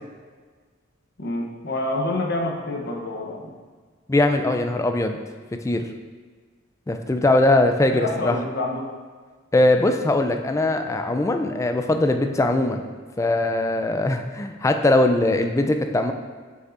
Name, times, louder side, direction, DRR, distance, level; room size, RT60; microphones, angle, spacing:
voice 1, 1.2-3.4 7.9-8.8, left 2 dB, 55° left, 1 dB, 0.9 m, -27 dB
voice 2, 4.1-5.2 5.6-5.8 6.9-8.3 9.5-12.8 13.2-16.1, left 2 dB, 15° left, 6 dB, 0.3 m, -21 dB
8.1 x 5.2 x 2.6 m, 1.5 s
head